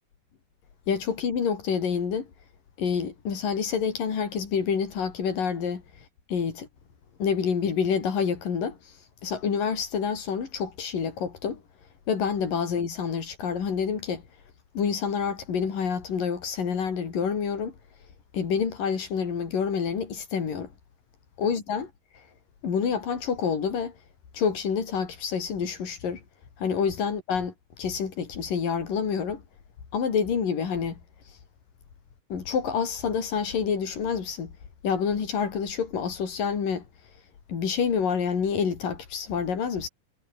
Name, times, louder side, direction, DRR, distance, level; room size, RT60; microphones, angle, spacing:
voice 1, 0.9-2.3 2.8-5.8 6.3-6.7 7.2-8.8 9.2-11.6 12.1-14.2 14.8-17.7 18.3-20.7 21.4-21.9 22.6-23.9 24.3-26.2 26.6-27.5 27.8-29.4 29.9-31.0 32.3-34.5 34.8-36.8 37.5-39.9, left 6 dB, 80° left, 5.3 m, -27 dB
omnidirectional pair, 3.8 m